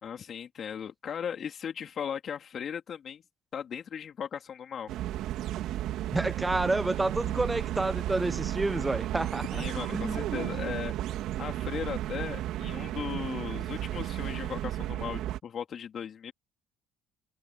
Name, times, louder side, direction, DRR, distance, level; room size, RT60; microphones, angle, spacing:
voice 1, 0.0-3.2 3.5-4.9 9.5-10.9 11.4-16.3, left 8 dB, 50° left, 3.3 m, -37 dB
sound 1, 4.9-15.4, right 13 dB, 70° right, 4.2 m, -33 dB
voice 2, 6.1-9.5 9.9-10.2, right 2 dB, 15° right, 1.2 m, -29 dB
supercardioid pair, 70°, 0 cm